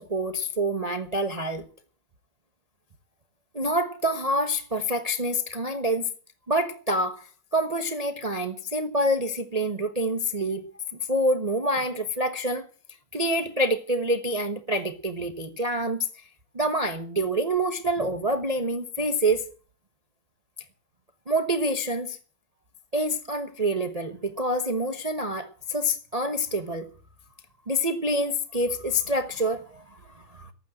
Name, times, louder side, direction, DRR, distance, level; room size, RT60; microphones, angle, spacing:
voice 1, 0.0-1.6 3.5-6.1 6.5-7.3 7.5-10.6 11.1-12.7 13.1-16.1 16.5-19.4 21.3-22.2 22.9-26.9 27.7-30.0 30.3-30.5, equal, 30° right, 6 dB, 0.7 m, -26 dB
13.5 x 9.5 x 7.7 m, 0.40 s
omnidirectional pair, 2.4 m